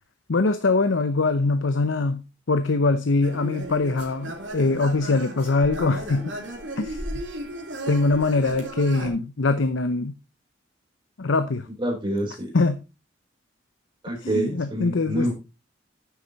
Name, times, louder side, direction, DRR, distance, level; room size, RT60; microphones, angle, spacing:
voice 1, 0.3-6.3 6.8-7.0 7.9-10.1 11.2-11.7 12.5-12.8 14.3-15.3, left 3 dB, 85° left, 0.7 m, -23 dB
sound 1, 3.2-9.1, right 1 dB, 80° right, 2.7 m, -35 dB
voice 2, 11.8-12.5 14.0-15.3, right 1 dB, 25° right, 3.5 m, -27 dB
9.7 x 6.6 x 4.0 m
head